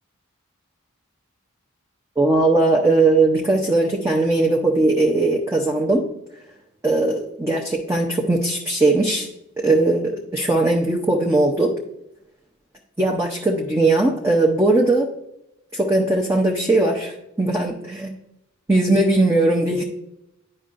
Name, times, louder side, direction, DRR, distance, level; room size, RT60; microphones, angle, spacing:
voice 1, 2.2-6.0 6.8-9.3 9.6-11.7 13.0-15.1 15.7-18.1 18.7-19.8, right 2 dB, 15° right, -1 dB, 0.6 m, -19 dB
9.8 x 5.4 x 2.5 m, 0.82 s
head